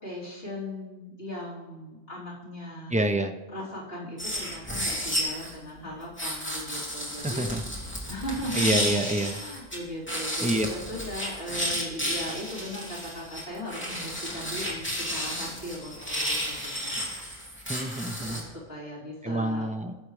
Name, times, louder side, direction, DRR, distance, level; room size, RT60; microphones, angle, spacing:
voice 1, 0.0-3.0 3.5-7.5 8.1-17.0 18.3-19.7, left 1 dB, 60° left, -7 dB, 3.6 m, -38 dB
voice 2, 2.9-3.3 7.2-7.6 8.5-9.4 10.4-10.7 17.7-18.4 19.2-20.0, right 1 dB, 10° right, 5 dB, 0.5 m, -27 dB
sound 1, 4.2-5.5 6.2-9.8 10.1-18.4, equal, 10° left, 2.8 m, -32 dB
18.5 x 7.3 x 3.3 m, 1.2 s
omnidirectional pair, 1.1 m